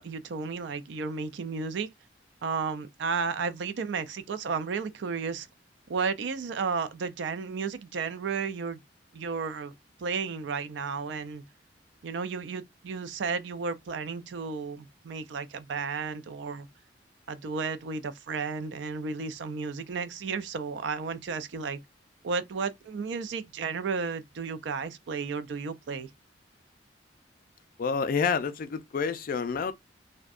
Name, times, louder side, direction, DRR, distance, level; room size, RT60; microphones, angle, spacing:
voice 1, 0.0-1.9 2.4-5.5 5.9-8.8 9.1-9.7 10.0-11.4 12.0-16.7 17.3-21.8 22.2-26.1, right 5 dB, 75° right, 0.4 m, -33 dB
voice 2, 27.8-29.7, left 5 dB, 50° left, 0.3 m, -28 dB
2.6 x 2.1 x 2.4 m
head